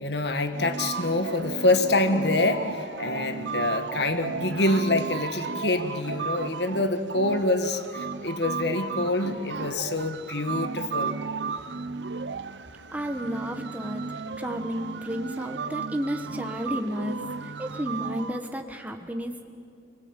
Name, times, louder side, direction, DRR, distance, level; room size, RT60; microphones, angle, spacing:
voice 1, 0.0-11.2, left 2 dB, 65° left, 8 dB, 1.7 m, -26 dB
sound 1, 0.5-18.4, right 4 dB, 80° right, 0.8 m, -34 dB
voice 2, 12.9-14.0 14.3-19.4, equal, 10° right, 4 dB, 1.4 m, -32 dB
29.0 x 20.5 x 9.0 m, 2.3 s
head